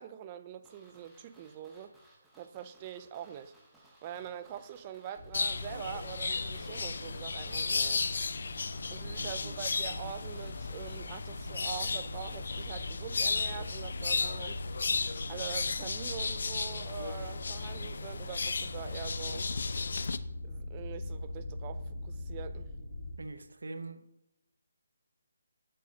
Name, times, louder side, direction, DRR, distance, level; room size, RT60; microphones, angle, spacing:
voice 1, 0.0-1.9 2.4-3.5 3.8-8.1 8.9-14.6 15.3-19.5 20.4-22.7, right 10 dB, 25° right, 0.3 m, -44 dB
sound 1, 0.6-11.6 11.9-12.0, right 1 dB, ahead, 0.9 m, -62 dB
sound 2, 5.2-23.1, left 1 dB, 35° left, 1.6 m, -42 dB
sound 3, 5.3-20.2, left 4 dB, 60° left, 0.3 m, -35 dB
voice 2, 9.0-9.6 23.2-24.0, right 2 dB, 75° right, 0.7 m, -43 dB
7.5 x 6.3 x 2.8 m
hypercardioid pair, 165°, 0 cm